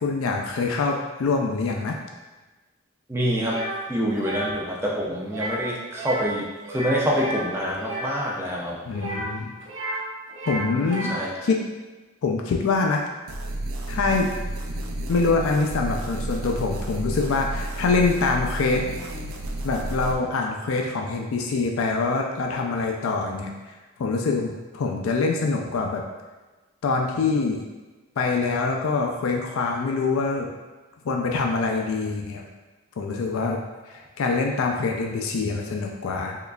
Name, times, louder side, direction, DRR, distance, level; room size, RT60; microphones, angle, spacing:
voice 1, 0.0-2.0 8.9-9.5 10.4-11.1 11.4-11.6 12.2-13.0 13.9-14.3 15.1-18.8 19.6-26.0 26.8-27.6 28.2-30.5 31.0-32.4 33.0-33.6 33.9-36.4, left 4 dB, 75° left, 1 dB, 0.4 m, -25 dB
voice 2, 3.1-3.6 3.9-8.8 11.1-11.5, equal, 10° right, -4 dB, 0.4 m, -26 dB
sound 1, 3.4-3.8 4.1-4.5 5.3-5.7 5.9-6.3 6.6-8.1 8.9-10.0 10.3-11.3, right 1 dB, 60° right, 0.9 m, -32 dB
sound 2, 13.3-20.1, right 1 dB, 80° right, 0.4 m, -31 dB
3.7 x 3.1 x 2.3 m, 1.2 s
head